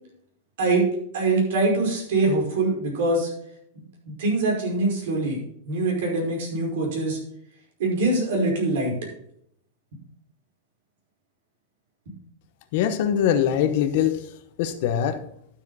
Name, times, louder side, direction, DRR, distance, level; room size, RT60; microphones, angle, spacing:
voice 1, 1.1-3.3 3.7-5.4 5.7-7.2 7.8-8.9, right 2 dB, 65° right, 0 dB, 5.0 m, -23 dB
voice 2, 12.7-14.2 14.6-15.2, left 9 dB, 45° left, 9 dB, 1.0 m, -22 dB
12.0 x 7.3 x 4.1 m, 0.70 s
supercardioid pair, 165°, 0 cm